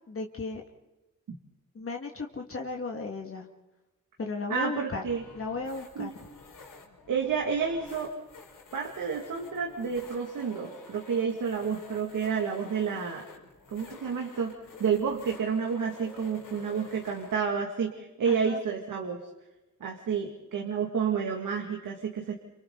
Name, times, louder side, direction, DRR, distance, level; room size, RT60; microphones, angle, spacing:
voice 1, 0.1-0.6 1.7-3.5 4.2-5.0 5.3-6.1 18.3-18.6, left 3 dB, 45° left, 1 dB, 2.3 m, -35 dB
voice 2, 4.5-5.2 6.0-6.1 7.1-8.1 8.7-13.2 13.7-14.5 14.8-19.2 19.8-22.3, right 6 dB, 80° right, 1 dB, 2.5 m, -30 dB
sound 1, 5.1-17.3, left 4 dB, 80° left, 5.2 m, -50 dB
29.0 x 27.5 x 4.1 m, 1.0 s
cardioid pair, 80°, 31 cm